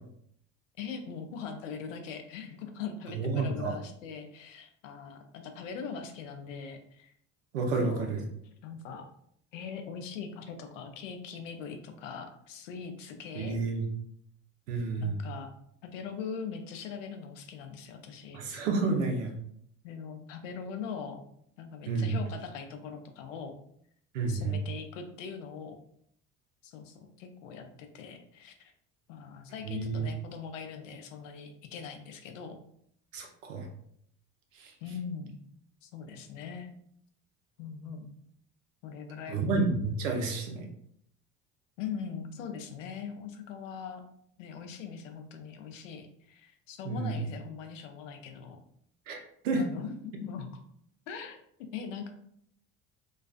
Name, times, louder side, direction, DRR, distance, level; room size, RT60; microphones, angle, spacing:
voice 1, 0.8-7.1 7.8-8.1 8.6-9.0 9.5-13.6 15.0-15.5 15.8-18.4 19.8-21.2 21.6-23.5 24.3-25.8 26.6-28.7 29.1-32.6 34.8-35.4 35.8-36.7 37.6-38.0 38.8-39.7 41.8-44.0 44.4-48.6 49.6-50.5 51.1-52.1, left 6 dB, 85° left, 6 dB, 0.5 m, -41 dB
voice 2, 3.1-3.7 7.5-8.2 13.3-13.8 14.7-15.2 18.3-19.3 21.9-22.2 24.1-24.6 29.6-30.1 33.1-33.7 34.6-34.7 39.3-40.6 46.8-47.2 49.1-49.6, right 3 dB, 85° right, 3 dB, 0.6 m, -30 dB
2.4 x 2.3 x 2.3 m, 0.68 s
hypercardioid pair, 65°, 37 cm